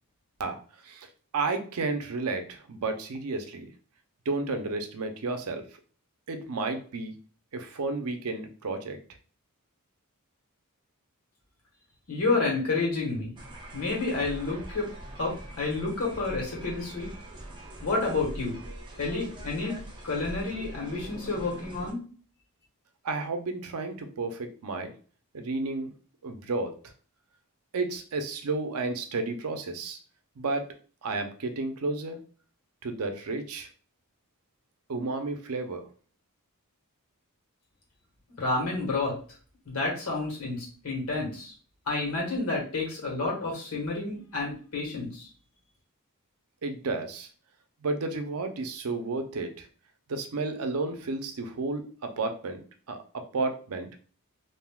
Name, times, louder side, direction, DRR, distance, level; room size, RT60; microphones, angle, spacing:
voice 1, 1.3-3.7 4.3-5.6 6.3-7.1 7.5-9.0 23.0-24.9 25.3-25.9 26.2-26.7 27.7-30.0 30.4-30.7 31.0-32.2 32.8-33.7 34.9-35.8 46.6-47.3 47.8-49.7 50.1-52.6 52.9-53.9, right 3 dB, 70° right, 6 dB, 0.5 m, -32 dB
voice 2, 12.1-13.3 13.7-14.9 15.1-17.1 17.8-18.6 19.0-19.7 20.0-22.0 38.4-39.2 39.6-41.5 41.9-45.3, left 3 dB, 70° left, -3 dB, 1.3 m, -30 dB
sound 1, 13.4-21.9, right 1 dB, 20° right, 0.6 m, -42 dB
3.5 x 2.6 x 2.2 m, 0.41 s
head